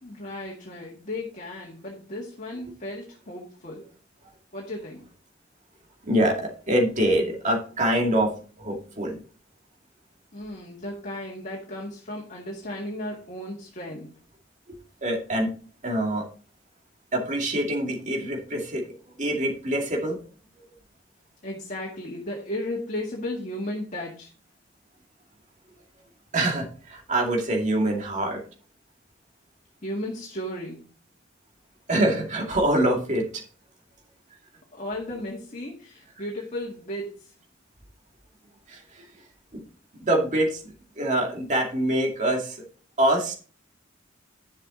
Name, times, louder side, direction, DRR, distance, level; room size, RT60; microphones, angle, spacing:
voice 1, 0.0-3.9 4.5-5.0 10.3-14.1 21.4-24.3 29.8-30.8 34.7-37.3, left 1 dB, 40° left, -1 dB, 1.9 m, -35 dB
voice 2, 6.0-9.2 14.7-15.5 15.8-16.2 17.1-20.2 26.3-28.4 31.9-33.4 38.7-39.1 39.5-39.6 39.9-42.6 43.0-43.3, right 1 dB, 40° right, 1 dB, 2.4 m, -25 dB
10.5 x 7.4 x 3.9 m, 0.38 s
head